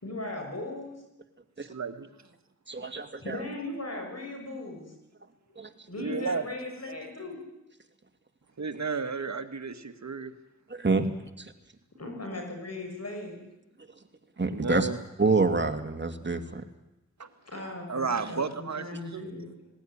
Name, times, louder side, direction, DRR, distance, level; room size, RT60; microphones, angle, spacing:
voice 1, 0.0-0.9 3.2-4.9 5.9-7.4 12.0-13.4 17.4-19.7, left 2 dB, 55° left, 3 dB, 6.2 m, -38 dB
voice 2, 1.7-2.1 6.0-6.4 8.6-10.3 14.4-15.0 17.2-17.3 17.9-18.8 19.1-19.2, right 5 dB, 60° right, 7 dB, 1.7 m, -32 dB
voice 3, 2.7-3.5 5.5-5.9 10.7-11.5 13.8-14.1 14.4-14.9 15.2-16.7, right 3 dB, 35° right, 6 dB, 2.4 m, -28 dB
19.0 x 17.5 x 9.9 m, 0.94 s
cardioid pair, 50°, 31 cm